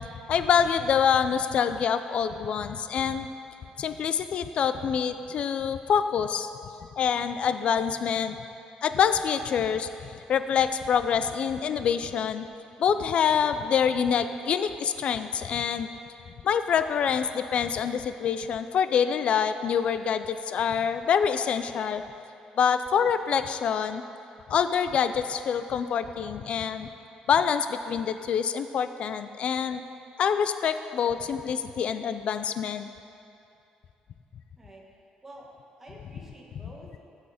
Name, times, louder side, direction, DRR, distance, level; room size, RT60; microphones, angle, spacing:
voice 1, 0.0-3.3 3.8-6.5 7.0-8.4 8.8-12.5 12.8-15.9 16.4-22.0 22.6-24.0 24.5-26.9 27.3-29.8 30.2-32.9, left 7 dB, 45° left, 10 dB, 0.5 m, -26 dB
voice 2, 35.8-37.0, right 1 dB, 10° right, -3 dB, 1.5 m, -49 dB
15.0 x 6.5 x 5.0 m, 2.6 s
cardioid pair, 170°, 3 cm